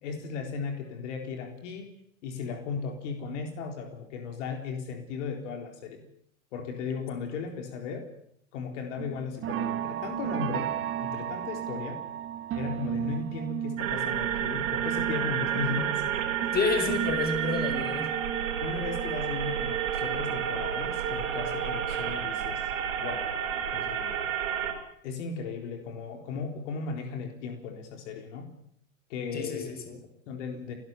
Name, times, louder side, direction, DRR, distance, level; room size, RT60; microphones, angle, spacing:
voice 1, 0.0-1.9 2.2-6.0 6.5-8.1 8.5-10.7 11.0-12.0 12.5-16.0 16.4-16.5 18.6-22.6 23.0-23.3 23.7-24.3 25.0-28.5 29.1-30.7, left 5 dB, 65° left, 4 dB, 4.0 m, -36 dB
sound 1, 9.0-21.1 21.5-23.1 23.5-23.8 24.1-24.2, right 10 dB, 35° right, 1.5 m, -36 dB
sound 2, 13.8-24.7, right 9 dB, 80° right, 5.0 m, -30 dB
voice 2, 16.5-18.1 29.3-30.0, left 4 dB, 25° left, 7 dB, 5.2 m, -29 dB
30.0 x 12.5 x 7.5 m, 0.68 s
hypercardioid pair, 105°, 38 cm